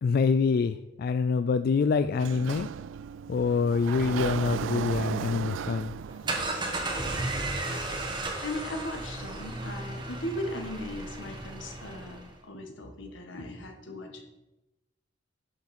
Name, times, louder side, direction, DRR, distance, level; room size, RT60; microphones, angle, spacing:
voice 1, 0.0-2.7 3.3-5.9, left 5 dB, 55° left, 11 dB, 0.3 m, -26 dB
Sliding door, 2.1-7.1, right 7 dB, 75° right, 0.3 m, -35 dB
sound 1, 6.0-12.3, right 2 dB, 25° right, 1.4 m, -34 dB
voice 2, 8.4-14.2, left 1 dB, 80° left, 4 dB, 1.5 m, -38 dB
11.0 x 6.1 x 4.3 m, 0.98 s
head